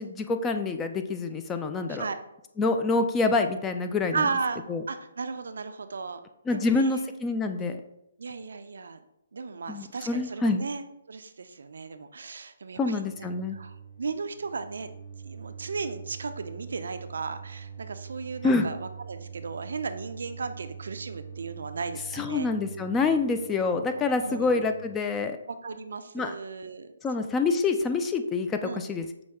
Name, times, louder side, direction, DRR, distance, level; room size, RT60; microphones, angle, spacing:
voice 1, 0.0-2.1 2.6-4.3 4.7-4.8 6.5-7.8 9.7-10.6 12.8-13.6 18.4-18.7 22.1-25.4 26.1-26.3 27.0-29.2, left 3 dB, 15° left, 7 dB, 0.3 m, -26 dB
voice 2, 4.1-4.6 4.9-6.2 6.5-6.9 8.2-9.0 9.3-14.9 15.2-22.5 23.8-24.7 25.5-26.9 28.6-28.9, right 4 dB, 70° right, 9 dB, 0.4 m, -35 dB
sound 1, 13.1-24.9, right 7 dB, 75° left, 1.1 m, -44 dB
5.9 x 2.2 x 3.5 m, 0.84 s
hypercardioid pair, 145°, 0 cm